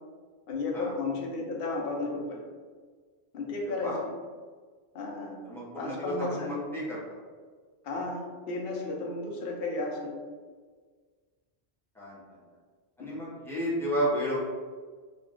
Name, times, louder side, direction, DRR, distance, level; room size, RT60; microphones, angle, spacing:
voice 1, 0.5-2.4 3.3-4.1 4.9-5.4 5.7-6.6 7.8-10.2 13.0-13.2, left 3 dB, 65° left, 0 dB, 0.8 m, -33 dB
voice 2, 3.6-4.0 5.4-7.0 12.0-12.2 13.0-14.4, equal, 5° left, -8 dB, 0.6 m, -32 dB
2.4 x 2.3 x 3.5 m, 1.5 s
omnidirectional pair, 1.1 m